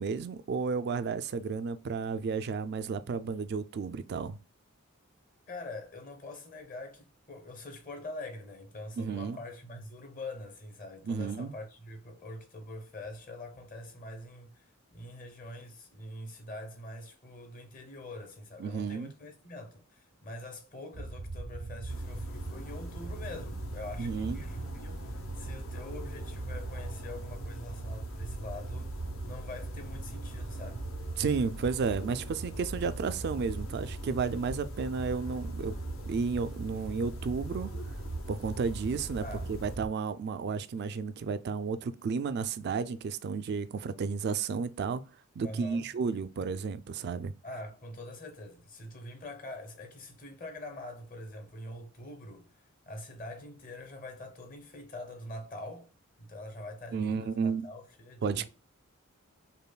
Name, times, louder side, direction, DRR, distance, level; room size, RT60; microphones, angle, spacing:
voice 1, 0.0-4.4 9.0-9.4 11.1-11.5 18.6-19.1 24.0-24.5 31.2-35.7 36.1-37.7 38.3-45.0 45.4-47.3 56.9-57.7 58.2-58.5, right 5 dB, 50° right, 0.3 m, -32 dB
voice 2, 5.5-28.9 29.2-30.9 39.2-39.5 45.4-45.9 47.4-52.6 52.9-55.9 56.2-58.5, left 1 dB, 40° left, 0.9 m, -44 dB
sound 1, 20.9-39.9, right 2 dB, 85° right, 0.6 m, -39 dB
sound 2, 21.9-39.8, left 3 dB, 70° left, 0.8 m, -50 dB
5.3 x 2.2 x 2.3 m
head